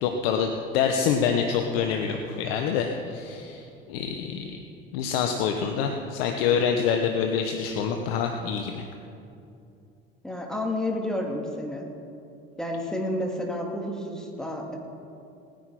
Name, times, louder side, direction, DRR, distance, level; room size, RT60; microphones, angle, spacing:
voice 1, 0.0-4.6 4.9-8.8, left 7 dB, 80° left, 4 dB, 1.1 m, -26 dB
voice 2, 10.2-11.9 12.6-14.8, left 1 dB, ahead, 0 dB, 2.6 m, -30 dB
18.5 x 10.0 x 4.9 m, 2.6 s
supercardioid pair, 80°, 29 cm